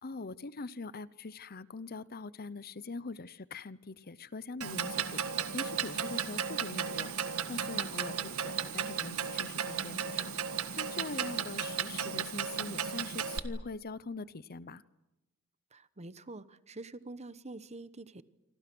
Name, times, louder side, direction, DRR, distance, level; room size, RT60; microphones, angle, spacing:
voice 1, 0.0-10.3 10.7-14.8, left 3 dB, 45° left, 17 dB, 0.8 m, -43 dB
Clock, 4.6-13.4, right 7 dB, 75° right, 1.8 m, -35 dB
voice 2, 15.7-18.2, right 2 dB, 30° right, 15 dB, 1.0 m, -46 dB
28.0 x 25.5 x 6.2 m, 0.98 s
head